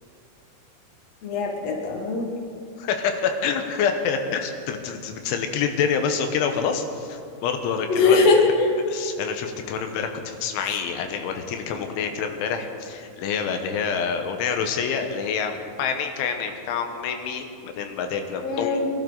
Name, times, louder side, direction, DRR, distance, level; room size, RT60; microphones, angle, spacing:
voice 1, 1.2-2.3 7.9-8.7 18.4-18.9, left 4 dB, 55° left, 1 dB, 1.9 m, -20 dB
voice 2, 2.8-8.2 8.9-18.8, left 6 dB, 85° left, 5 dB, 3.5 m, -27 dB
24.5 x 12.0 x 4.0 m, 2.4 s
omnidirectional pair, 5.3 m